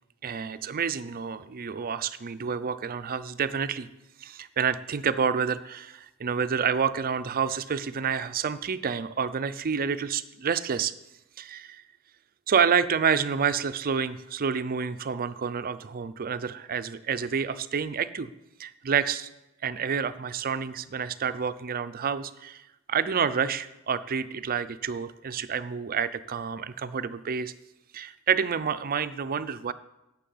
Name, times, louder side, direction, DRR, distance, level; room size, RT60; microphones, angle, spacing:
voice 1, 0.2-3.9 4.2-10.9 11.4-11.8 12.5-18.3 18.6-19.3 19.6-22.6 22.9-27.5 27.9-29.7, right 6 dB, 45° right, 13 dB, 0.5 m, -28 dB
10.0 x 6.1 x 7.8 m, 0.93 s
head